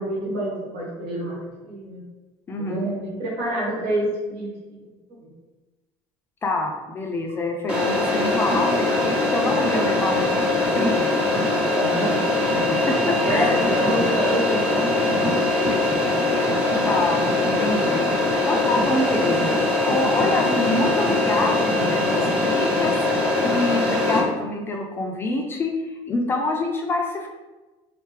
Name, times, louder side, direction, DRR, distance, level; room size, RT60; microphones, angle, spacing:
voice 1, 0.0-1.3 1.6-2.0 2.6-4.5 5.2-5.3 11.6-12.3 12.6-12.7 13.1-14.8 15.9-16.2, right 1 dB, 85° right, -7 dB, 1.5 m, -27 dB
voice 2, 2.5-2.9 6.4-11.1 12.7-13.6 16.8-18.1 18.4-27.3, left 2 dB, 20° left, 1 dB, 0.3 m, -26 dB
sound 1, 7.7-24.2, left 2 dB, 10° right, 0.8 m, -22 dB
3.6 x 3.3 x 3.2 m, 1.2 s
cardioid pair, 175°, 11 cm